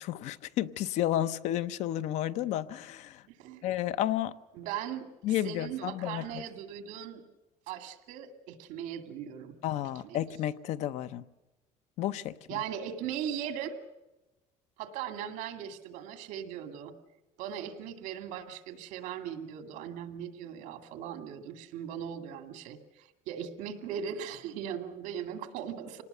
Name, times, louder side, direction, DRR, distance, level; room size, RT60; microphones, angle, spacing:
voice 1, 0.0-3.2 3.6-4.3 5.2-6.4 9.6-11.3 12.0-12.3, left 12 dB, 60° left, 0.7 m, -31 dB
voice 2, 3.3-3.6 4.5-7.2 7.7-9.6 10.0-10.2 12.5-13.8 14.8-16.9 17.4-26.0, right 9 dB, 75° right, 2.2 m, -39 dB
25.5 x 19.0 x 6.7 m
cardioid pair, 170°, 13 cm